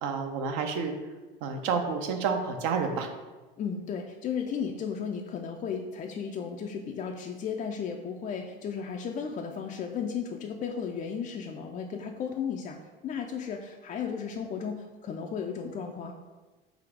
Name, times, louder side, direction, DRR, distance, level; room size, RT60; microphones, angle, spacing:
voice 1, 0.0-0.9 1.4-3.1, right 5 dB, 60° right, 5 dB, 0.7 m, -29 dB
voice 2, 3.6-12.8 13.0-16.1, left 6 dB, 25° left, 2 dB, 0.3 m, -34 dB
3.9 x 2.4 x 4.6 m, 1.2 s
hypercardioid pair, 75°, 29 cm